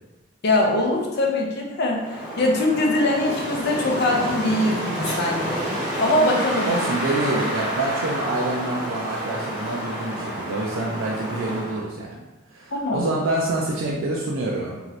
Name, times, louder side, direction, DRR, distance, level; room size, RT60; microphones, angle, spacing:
voice 1, 0.4-5.6 6.0-6.8 12.7-13.1, left 1 dB, 55° left, -1 dB, 0.5 m, -22 dB
Wind, 1.9-11.8, equal, 20° right, 1.4 m, -29 dB
voice 2, 6.6-12.1 12.5-14.9, right 2 dB, 80° right, -3 dB, 0.4 m, -26 dB
2.7 x 2.5 x 3.0 m, 1.1 s
head